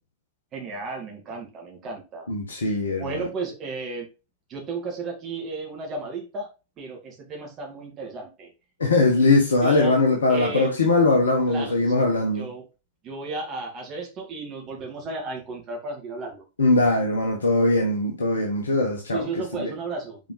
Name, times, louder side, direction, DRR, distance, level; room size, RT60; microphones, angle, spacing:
voice 1, 0.5-2.3 3.0-4.1 4.5-6.5 6.8-8.5 9.6-10.0 10.3-10.7 11.5-11.9 12.4-12.6 13.0-16.4 19.1-20.2, right 3 dB, 30° right, 2.0 m, -33 dB
voice 2, 2.3-3.2 8.8-12.5 16.6-19.2 19.6-19.7, left 2 dB, 70° left, 1.1 m, -21 dB
5.9 x 5.0 x 3.2 m
figure-of-eight pair, 90°, 0 cm